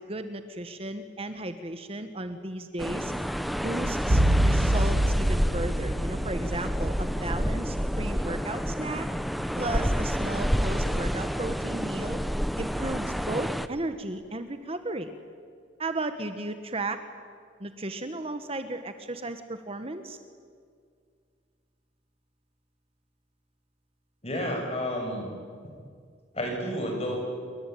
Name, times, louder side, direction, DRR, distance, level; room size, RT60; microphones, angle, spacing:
voice 1, 0.0-3.1 3.6-9.1 9.5-12.2 12.6-15.1 15.8-17.0 17.6-20.2, right 2 dB, 30° right, 9 dB, 1.3 m, -35 dB
sound 1, 2.8-13.7, equal, ahead, 0.8 m, -29 dB
massive metal hit, 4.1-8.3 8.6-8.7, right 1 dB, 70° right, 1.4 m, -26 dB
voice 2, 24.2-25.3 26.3-27.2, equal, 35° left, 2 dB, 7.0 m, -30 dB
28.0 x 23.0 x 9.2 m, 2.1 s
head